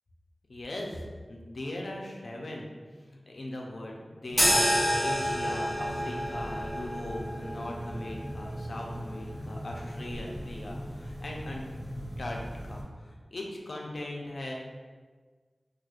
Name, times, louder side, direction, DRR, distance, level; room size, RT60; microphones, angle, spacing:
voice 1, 0.5-1.0 1.3-2.7 3.1-4.6 5.0-11.6 12.2-14.5, left 1 dB, 65° left, -1 dB, 0.5 m, -39 dB
sound 1, 4.3-12.8, equal, 20° right, 1.1 m, -31 dB
4.5 x 2.3 x 2.4 m, 1.5 s
wide cardioid pair, 80°, 0 cm